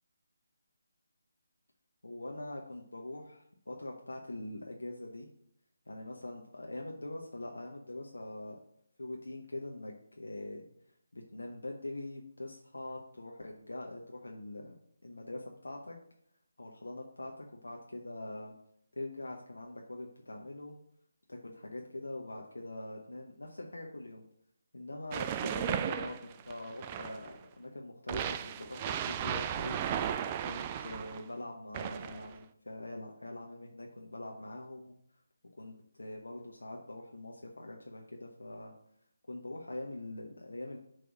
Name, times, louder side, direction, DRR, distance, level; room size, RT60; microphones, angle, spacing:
voice 1, 2.0-5.3 5.9-8.6 9.0-10.7 11.1-14.7 15.0-16.0 16.6-18.6 19.0-20.8 21.3-24.2 24.7-29.8 30.1-34.9 35.5-38.7 39.3-40.8, left 1 dB, 75° left, 0 dB, 1.0 m, -43 dB
sound 1, 25.1-27.4 28.1-31.2 31.7-32.3, right 9 dB, 25° right, 0.3 m, -35 dB
7.2 x 3.4 x 6.0 m, 0.71 s
figure-of-eight pair, 150°, 0 cm